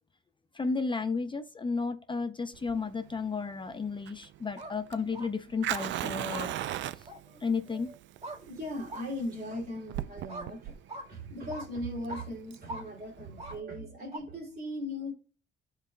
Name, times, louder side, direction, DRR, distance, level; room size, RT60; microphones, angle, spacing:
voice 1, 0.5-6.5 7.4-7.9, left 4 dB, 25° left, 0.5 m, -33 dB
Fire, 2.5-13.6, right 12 dB, 70° right, 0.4 m, -39 dB
sound 1, 4.4-4.7 5.1-5.3 5.7-5.9 6.3-6.5 7.1-7.2 8.2-8.4 8.9-9.1 9.5-9.6 10.3-10.5 10.9-11.1 11.5-11.7 12.1-12.3 12.7-12.8 13.4-13.6 14.1-14.2, right 1 dB, 30° right, 1.8 m, -41 dB
voice 2, 6.9-7.5 7.7-8.0 8.3-10.8 11.1-15.1, left 1 dB, 50° right, 2.9 m, -39 dB
12.0 x 4.5 x 2.2 m
cardioid pair, 90°, 20 cm